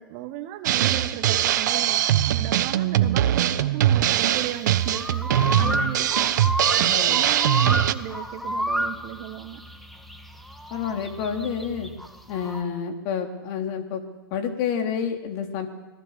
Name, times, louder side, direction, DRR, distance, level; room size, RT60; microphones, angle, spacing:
voice 1, 0.0-6.3 6.6-9.6, right 13 dB, 35° right, 11 dB, 1.4 m, -36 dB
Drum kit, 0.6-7.9, right 12 dB, 50° right, 1.1 m, -22 dB
sound 1, 4.1-12.6, equal, ahead, 2.1 m, -31 dB
voice 2, 5.6-5.9 6.8-7.2 10.7-11.9 12.3-14.0 14.3-15.7, left 7 dB, 35° left, 4 dB, 3.5 m, -29 dB
26.5 x 18.0 x 6.8 m, 1.2 s
figure-of-eight pair, 115°, 12 cm